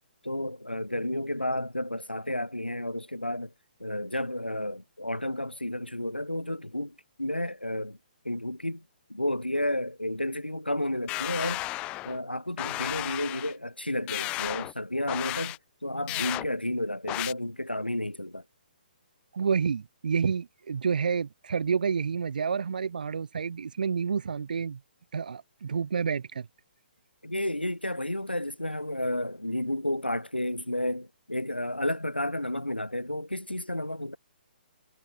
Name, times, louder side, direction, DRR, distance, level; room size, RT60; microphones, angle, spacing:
voice 1, 0.2-3.5 3.8-8.0 8.2-8.8 9.1-11.6 12.0-15.6 15.8-18.4 27.2-34.2, left 1 dB, 85° left, 2.9 m, -31 dB
sound 1, 11.1-12.2 12.6-13.5 14.1-14.7 15.1-15.6 16.1-16.5 17.1-17.3, left 19 dB, 20° left, 2.7 m, -33 dB
voice 2, 19.3-24.8 25.1-26.5, right 6 dB, 55° right, 1.6 m, -29 dB
figure-of-eight pair, 130°, 5 cm